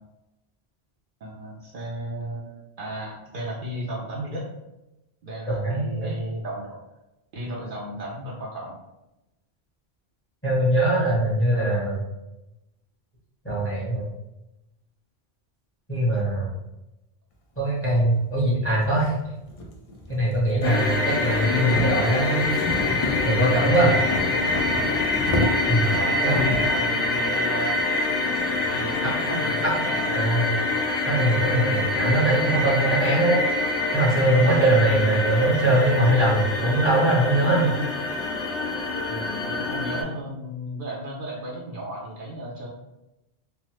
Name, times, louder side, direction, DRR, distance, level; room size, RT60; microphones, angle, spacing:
voice 1, 1.2-4.4 5.2-6.8 7.3-8.7 23.9-25.1 25.9-27.8 28.7-30.3 39.1-42.7, right 1 dB, 60° right, -4 dB, 0.7 m, -34 dB
voice 2, 5.5-6.1 10.4-12.0 13.4-14.1 15.9-16.5 17.6-19.2 20.1-22.5 23.2-23.9 25.7-25.9 26.2-26.5 30.1-30.5 31.1-33.4 33.9-37.7, right 1 dB, 15° left, -8 dB, 1.0 m, -21 dB
sound 1, 17.9-18.0 18.7-26.8, left 1 dB, 45° left, 0.4 m, -31 dB
sound 2, 20.6-40.0, left 3 dB, 85° left, 1.0 m, -25 dB
3.3 x 2.0 x 2.9 m, 0.95 s
omnidirectional pair, 1.1 m